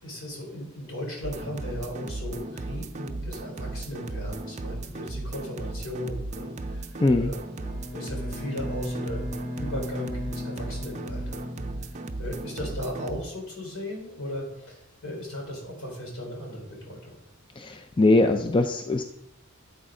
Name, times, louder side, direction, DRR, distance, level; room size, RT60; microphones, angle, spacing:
voice 1, 0.0-7.4 7.9-9.2 9.6-11.5 11.8-17.2, left 1 dB, 65° left, -1 dB, 4.2 m, -37 dB
sound 1, 1.2-13.2, right 2 dB, 35° right, 0.6 m, -36 dB
Bowed string instrument, 7.6-12.3, left 1 dB, 40° left, 3.0 m, -37 dB
voice 2, 17.6-19.0, left 2 dB, 25° left, 6 dB, 0.5 m, -21 dB
13.0 x 8.1 x 3.8 m, 0.83 s
head